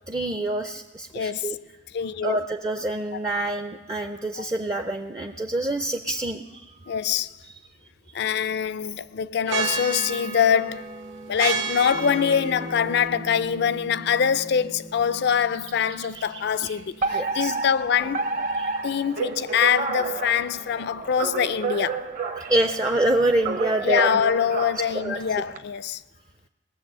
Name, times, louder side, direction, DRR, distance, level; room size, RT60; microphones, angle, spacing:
voice 1, 0.1-1.6 2.2-7.0 8.1-8.3 17.1-17.5 18.6-18.7 22.5-24.2 25.0-25.2, right 1 dB, 20° right, 0.4 m, -26 dB
voice 2, 1.1-1.6 1.9-2.4 4.4-4.5 6.9-7.3 8.1-10.9 11.3-18.3 18.8-22.1 23.8-26.0, left 7 dB, 60° left, 0.4 m, -24 dB
sound 1, 9.5-20.7, right 5 dB, 80° right, 1.4 m, -35 dB
Bass guitar, 11.9-16.3, left 1 dB, 60° right, 2.1 m, -40 dB
Alarm, 17.0-25.6, right 4 dB, 45° right, 0.8 m, -30 dB
18.0 x 7.4 x 6.7 m
head